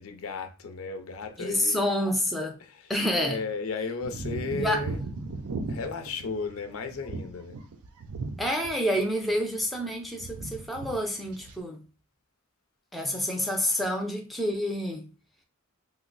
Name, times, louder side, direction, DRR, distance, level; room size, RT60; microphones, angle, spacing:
voice 1, 0.0-1.9 2.6-5.0 5.7-7.6, left 4 dB, 70° left, 0.5 m, -35 dB
voice 2, 1.4-2.6 2.9-3.4 4.5-4.8 8.4-11.8 12.9-15.1, equal, ahead, 0.4 m, -28 dB
sound 1, 4.0-9.0 9.2-9.9 10.2-11.0 11.2-11.6, right 3 dB, 85° right, 0.5 m, -37 dB
2.8 x 2.1 x 3.8 m
head